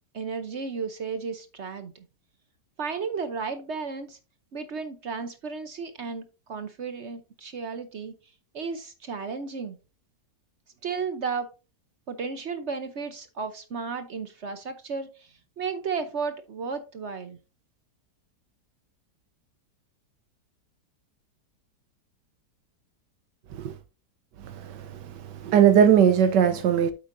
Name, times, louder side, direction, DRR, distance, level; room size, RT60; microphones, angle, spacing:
voice 1, 0.1-2.0 2.8-4.2 4.5-8.1 8.5-9.8 10.8-11.5 12.1-17.4, right 5 dB, 50° right, 0.9 m, -33 dB
voice 2, 24.4-25.1 25.4-26.9, right 8 dB, 85° right, 1.4 m, -20 dB
8.5 x 8.2 x 2.6 m
omnidirectional pair, 1.8 m